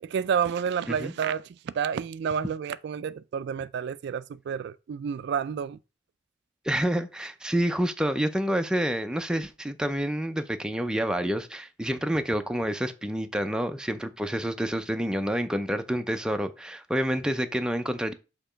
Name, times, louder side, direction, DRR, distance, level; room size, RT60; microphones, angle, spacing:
voice 1, 0.0-5.8, right 7 dB, 65° right, 0.3 m, -30 dB
voice 2, 6.6-18.1, equal, 5° right, 0.5 m, -28 dB
6.7 x 2.9 x 5.0 m
head